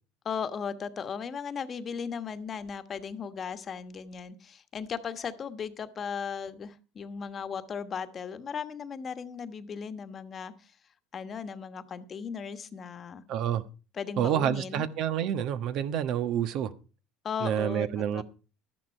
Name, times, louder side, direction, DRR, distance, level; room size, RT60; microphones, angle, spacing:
voice 1, 0.2-10.7 11.1-13.2 13.9-14.8 17.2-18.2, left 6 dB, 40° left, 1.2 m, -37 dB
voice 2, 13.3-13.6 14.2-16.7 17.4-18.2, right 10 dB, 65° right, 1.2 m, -28 dB
12.5 x 10.5 x 4.6 m
supercardioid pair, 95°, 0 cm